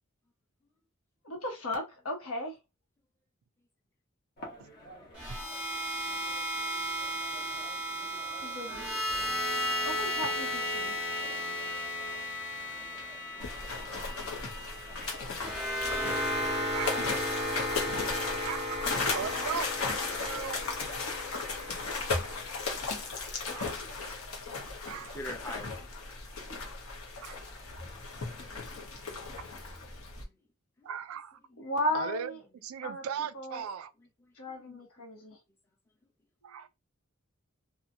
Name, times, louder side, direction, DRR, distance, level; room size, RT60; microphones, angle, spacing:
voice 1, 1.2-2.6 8.4-8.9 9.8-11.0 22.3-22.4 28.9-29.0 30.0-30.1 31.6-32.4 32.8-33.0 33.3-33.7 34.4-35.4, left 1 dB, 90° left, 1.1 m, -35 dB
sound 1, 4.4-20.9, left 1 dB, 45° left, 1.1 m, -52 dB
sound 2, 5.1-23.3, equal, 5° right, 1.1 m, -35 dB
sound 3, 13.4-30.2, left 4 dB, 75° left, 0.9 m, -36 dB
voice 2, 16.7-17.6 18.3-20.7 21.3-21.4 22.7-22.9 23.5-23.8 24.9-25.2 27.2-27.4 29.4-29.5 30.8-31.4 31.9-32.3 32.6-33.9 36.4-36.7, right 7 dB, 70° right, 0.3 m, -39 dB
voice 3, 25.1-26.0 29.8-30.4 30.8-30.9 31.5-31.7 32.8-32.9 34.0-35.4, left 1 dB, 10° left, 0.6 m, -47 dB
2.8 x 2.4 x 2.6 m
head